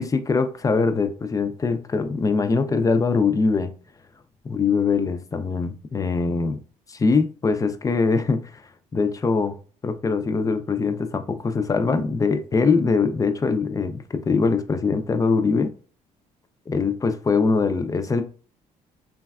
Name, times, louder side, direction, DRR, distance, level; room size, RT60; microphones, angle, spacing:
voice 1, 0.0-3.7 4.4-6.6 6.9-8.6 8.9-9.6 9.8-15.7 16.7-18.2, left 4 dB, 25° left, 0.4 m, -22 dB
3.2 x 2.2 x 2.3 m
cardioid pair, 85°, 14 cm